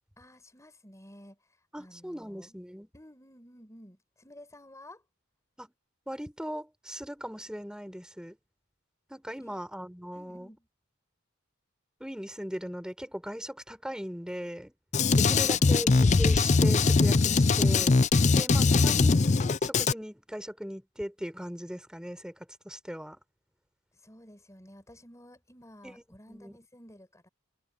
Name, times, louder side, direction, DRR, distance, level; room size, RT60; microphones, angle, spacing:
voice 1, 0.2-2.6 2.9-5.0 9.4-9.6 10.1-10.7 15.4-16.0 23.9-27.3, left 1 dB, 15° left, 6.4 m, -53 dB
voice 2, 1.7-2.9 5.6-5.7 6.1-8.4 9.1-10.5 12.0-14.7 15.1-18.0 18.3-19.3 19.6-23.2 25.8-25.9 26.3-26.6, equal, 5° right, 5.7 m, -38 dB
Drum kit, 14.9-19.9, left 4 dB, 35° left, 0.5 m, -22 dB
head